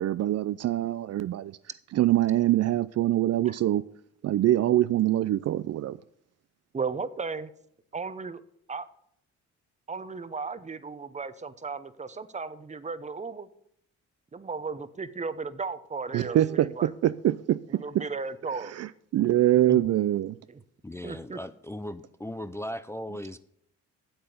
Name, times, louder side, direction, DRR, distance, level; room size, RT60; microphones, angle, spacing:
voice 1, 0.0-1.6 1.9-3.8 4.2-6.0 16.1-18.0 18.5-20.3, right 13 dB, 55° right, 0.5 m, -24 dB
voice 2, 6.7-7.5 7.9-8.4 8.7-8.9 9.9-13.5 14.3-16.4 16.8-16.9 17.8-18.7 21.0-21.4, right 4 dB, 25° right, 0.8 m, -35 dB
voice 3, 20.8-23.4, left 1 dB, 10° left, 0.5 m, -37 dB
8.8 x 7.8 x 6.7 m
cardioid pair, 90°, 30 cm